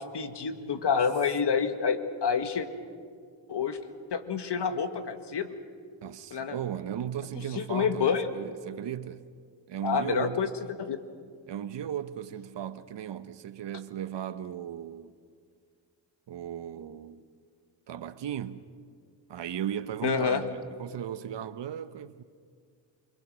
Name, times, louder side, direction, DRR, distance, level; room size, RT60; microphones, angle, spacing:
voice 1, 0.0-2.7 3.5-3.8 4.1-5.5 6.3-6.5 7.6-8.3 9.8-10.5 10.8-11.0 20.0-20.4, left 6 dB, 60° left, 1.9 m, -28 dB
voice 2, 6.0-9.2 9.7-10.6 11.5-15.1 16.3-17.2 17.9-18.6 19.3-22.2, right 10 dB, 65° right, 1.1 m, -36 dB
28.5 x 21.5 x 6.3 m
cardioid pair, 65°, 46 cm